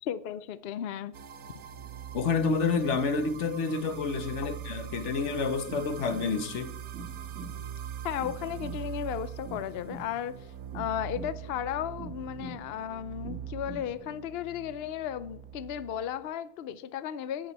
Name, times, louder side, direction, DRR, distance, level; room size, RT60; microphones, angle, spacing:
voice 1, 0.0-1.1 4.4-4.5 8.0-10.3 10.7-17.5, left 10 dB, 75° left, 0.5 m, -35 dB
sound 1, 1.1-16.3, right 10 dB, 70° right, 1.3 m, -42 dB
voice 2, 2.1-6.7, left 4 dB, 50° left, 1.2 m, -29 dB
sound 2, 5.7-14.0, right 2 dB, 50° right, 1.9 m, -46 dB
19.0 x 8.0 x 4.1 m
omnidirectional pair, 1.7 m